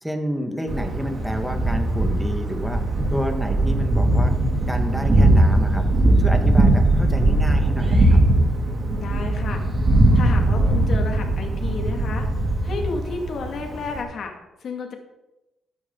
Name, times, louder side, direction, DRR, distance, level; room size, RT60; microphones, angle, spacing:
voice 1, 0.0-2.8 3.1-4.3 4.7-5.8 6.2-8.2, equal, 5° right, 4 dB, 1.9 m, -29 dB
Thunder, 0.7-14.0, right 1 dB, 40° right, 3.0 m, -20 dB
voice 2, 8.9-9.6 10.1-12.3 12.6-14.3 14.6-14.9, left 4 dB, 60° left, 3 dB, 2.4 m, -31 dB
14.0 x 9.7 x 4.0 m, 0.99 s
cardioid pair, 90°, 0 cm